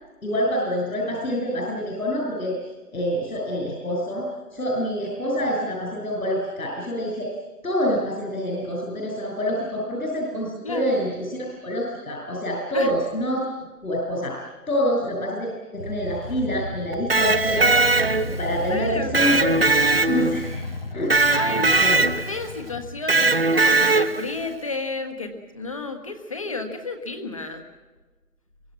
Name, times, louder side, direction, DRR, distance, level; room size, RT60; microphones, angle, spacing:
voice 1, 0.2-2.6 2.9-7.3 7.6-13.4 13.8-14.4 14.7-17.7 18.2-19.5 20.1-20.5 20.9-21.4 21.8-22.1, equal, 65° left, -2 dB, 6.8 m, -26 dB
sound 1, 15.8-24.7, left 1 dB, 40° left, 1.3 m, -35 dB
Electric guitar, 16.9-18.5 19.1-20.5 21.1-22.4 23.1-24.3, right 3 dB, 40° right, 0.9 m, -20 dB
voice 2, 18.7-19.2 21.3-27.6, left 3 dB, 20° left, 6 dB, 1.5 m, -31 dB
24.0 x 23.0 x 7.5 m, 1.3 s
hypercardioid pair, 175°, 46 cm